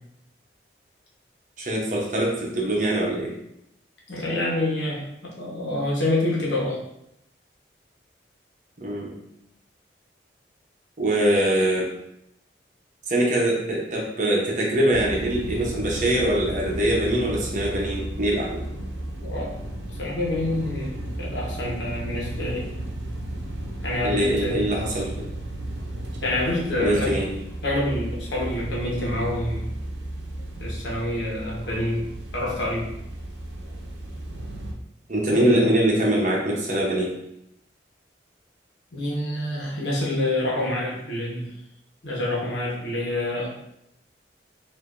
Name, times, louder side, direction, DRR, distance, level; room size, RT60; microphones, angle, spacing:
voice 1, 1.6-3.3 8.8-9.1 11.0-11.9 13.1-18.6 24.0-25.3 26.8-27.3 35.1-37.1, right 1 dB, 45° right, -2 dB, 0.9 m, -23 dB
voice 2, 4.1-6.8 19.2-19.5 20.0-22.7 23.8-24.6 26.2-27.1 27.6-29.7 30.6-32.0 32.3-32.9 35.3-35.7 38.9-41.5 42.0-43.5, left 1 dB, 80° left, -4 dB, 1.1 m, -27 dB
sound 1, 14.9-34.7, right 1 dB, 80° right, 0.7 m, -34 dB
4.8 x 2.7 x 2.6 m, 0.79 s
head